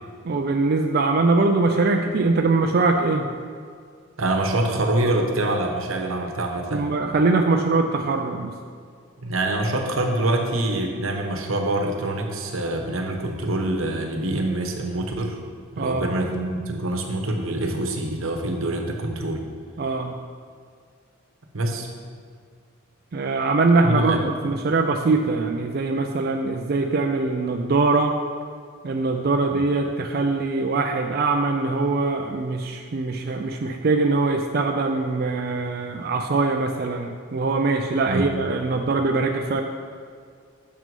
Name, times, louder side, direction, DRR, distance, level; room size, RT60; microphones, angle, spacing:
voice 1, 0.3-3.3 6.7-8.5 15.8-16.1 19.8-20.1 23.1-28.1 28.8-39.6, right 3 dB, 50° right, 3 dB, 0.4 m, -22 dB
voice 2, 4.2-6.9 9.2-15.4 15.7-19.4 21.5-21.9 23.8-24.2 29.5-29.6 38.1-38.3, right 1 dB, 85° right, 3 dB, 1.0 m, -25 dB
6.7 x 6.1 x 5.3 m, 2.1 s
head